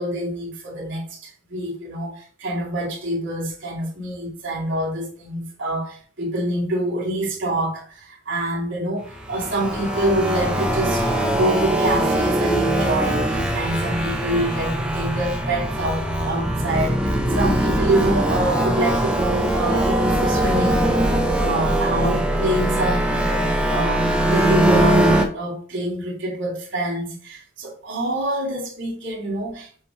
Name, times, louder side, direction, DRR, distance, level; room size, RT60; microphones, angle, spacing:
voice 1, 0.0-20.9 21.4-29.8, right 1 dB, 65° right, 2.4 m, -26 dB
sound 1, 9.0-25.3, right 1 dB, 5° right, 0.8 m, -21 dB
7.5 x 2.9 x 4.6 m
head